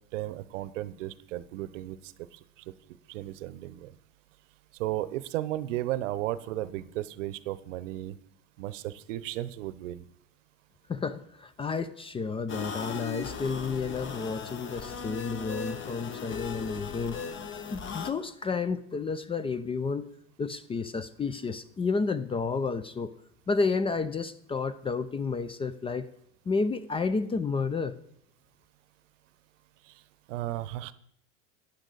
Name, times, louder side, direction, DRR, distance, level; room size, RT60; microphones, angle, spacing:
voice 1, 0.1-2.0 2.3-2.4 3.1-3.9 4.8-8.1 8.6-10.0 30.3-30.9, right 14 dB, 75° right, 16 dB, 0.8 m, -34 dB
voice 2, 10.9-17.2 17.7-20.0 20.4-23.1 23.5-26.1 26.5-27.9, left 4 dB, 15° left, 15 dB, 0.4 m, -31 dB
sound 1, 12.5-18.1, left 5 dB, 30° left, 1.2 m, -37 dB
14.0 x 9.9 x 4.0 m, 0.71 s
hypercardioid pair, 100°, 38 cm